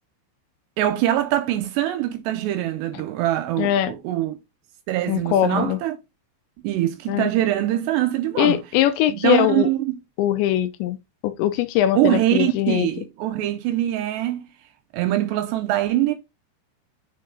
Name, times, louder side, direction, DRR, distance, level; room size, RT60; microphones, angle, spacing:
voice 1, 0.8-4.4 4.9-6.0 6.6-8.6 9.1-10.0 12.0-14.5 14.9-16.1, right 13 dB, 80° right, 2.6 m, -23 dB
voice 2, 3.6-3.9 5.1-5.8 7.1-7.3 8.4-9.7 10.2-11.0 11.2-12.9, left 12 dB, 80° left, 2.9 m, -21 dB
6.8 x 3.8 x 3.7 m
omnidirectional pair, 5.3 m